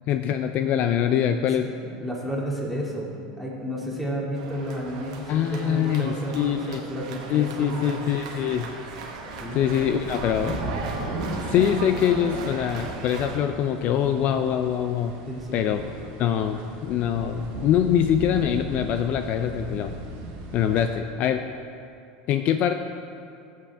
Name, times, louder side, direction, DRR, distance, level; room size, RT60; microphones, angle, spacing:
voice 1, 0.1-1.7 5.3-6.8 7.3-8.7 9.5-10.6 11.5-15.2 15.5-15.9 16.2-20.0 20.5-21.4 22.3-22.7, left 9 dB, 50° left, 7 dB, 0.5 m, -24 dB
voice 2, 2.0-8.0 9.4-9.6 15.3-15.6, equal, ahead, -4 dB, 2.4 m, -32 dB
sound 1, 4.3-13.4, right 4 dB, 85° right, 1.4 m, -38 dB
sound 2, 4.9-21.0, right 2 dB, 60° right, 1.7 m, -37 dB
14.0 x 7.5 x 3.5 m, 2.6 s
supercardioid pair, 115°, 3 cm